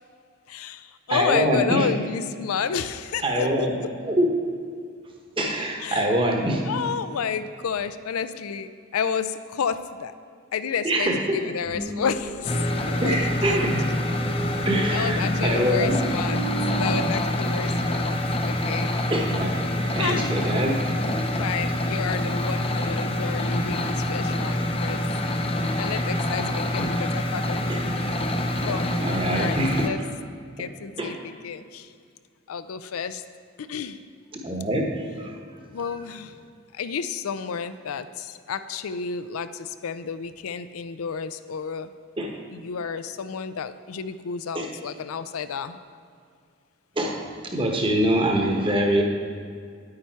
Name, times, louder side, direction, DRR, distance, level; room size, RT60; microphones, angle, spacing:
voice 1, 0.5-3.9 5.8-6.2 6.7-10.1 10.5-12.6 12.8-13.7 14.6-16.4 16.7-18.9 20.0-20.5 21.2-25.0 25.8-27.9 28.7-28.9 29.3-30.1 30.6-31.9 32.5-33.2 33.6-34.0 35.7-36.3 36.7-41.9 42.5-45.8, left 6 dB, 90° left, 12 dB, 0.4 m, -31 dB
voice 2, 1.1-1.9 3.2-3.8 4.0-4.3 5.4-6.6 10.8-11.4 13.0-13.8 14.6-16.0 19.1-19.6 20.0-20.8 25.9-26.0 26.3-26.5 27.0-27.1 27.7-27.8 29.0-29.9 31.0-31.1 34.4-35.4 42.2-42.3 44.5-44.7 47.0-49.0, right 1 dB, 25° right, 1 dB, 1.0 m, -24 dB
sound 1, 11.6-17.0, left 1 dB, 50° left, 1.4 m, -33 dB
sound 2, 12.5-29.9, left 1 dB, 25° left, 0.6 m, -26 dB
9.5 x 8.7 x 4.5 m, 2.1 s
head